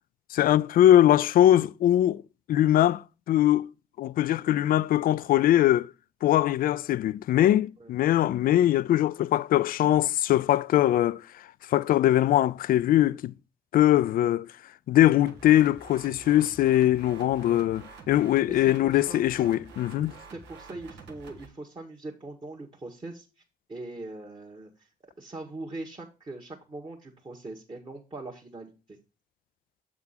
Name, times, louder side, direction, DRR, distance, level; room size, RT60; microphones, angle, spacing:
voice 1, 0.3-2.2 2.5-3.7 4.0-5.9 6.2-11.2 11.7-13.3 13.7-14.5 14.9-20.1, left 13 dB, 50° left, 0.4 m, -22 dB
sound 1, 15.3-21.5, right 4 dB, 65° right, 1.2 m, -48 dB
voice 2, 18.5-19.2 20.3-23.2 23.7-24.9 25.2-29.0, right 2 dB, 25° right, 1.5 m, -41 dB
7.6 x 3.7 x 5.7 m
hypercardioid pair, 45°, 19 cm